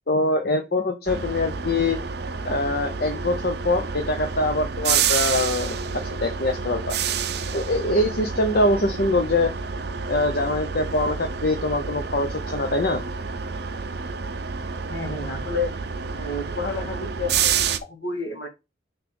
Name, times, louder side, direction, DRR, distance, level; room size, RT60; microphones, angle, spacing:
voice 1, 0.1-2.0 2.5-7.0 7.5-9.5 10.1-13.0, left 2 dB, 50° left, 0.7 m, -24 dB
sound 1, 1.1-17.8, right 6 dB, 55° right, 0.7 m, -29 dB
voice 2, 14.9-15.8 16.2-18.5, left 3 dB, 70° left, 1.9 m, -30 dB
5.9 x 3.3 x 5.2 m
head